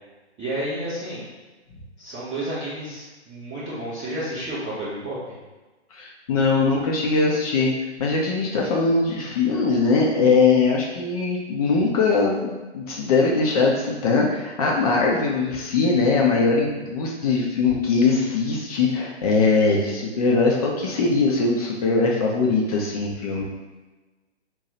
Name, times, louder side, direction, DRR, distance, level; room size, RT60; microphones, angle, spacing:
voice 1, 0.4-1.2 2.0-5.4, right 1 dB, 5° right, -22 dB, 0.3 m, -31 dB
voice 2, 5.9-7.7 8.0-23.5, left 4 dB, 35° left, -2 dB, 0.6 m, -21 dB
2.7 x 2.3 x 4.0 m, 1.2 s
figure-of-eight pair, 130°, 34 cm